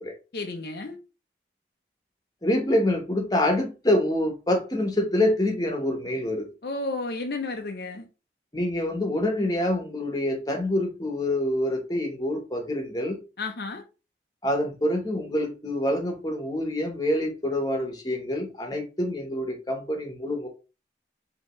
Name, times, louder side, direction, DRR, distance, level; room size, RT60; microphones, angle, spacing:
voice 1, 0.3-1.0 6.6-8.1 13.4-13.8, left 3 dB, 65° left, 0.6 m, -32 dB
voice 2, 2.4-6.5 8.5-13.2 14.4-20.5, left 1 dB, 20° left, 1.0 m, -26 dB
5.3 x 2.9 x 3.0 m
head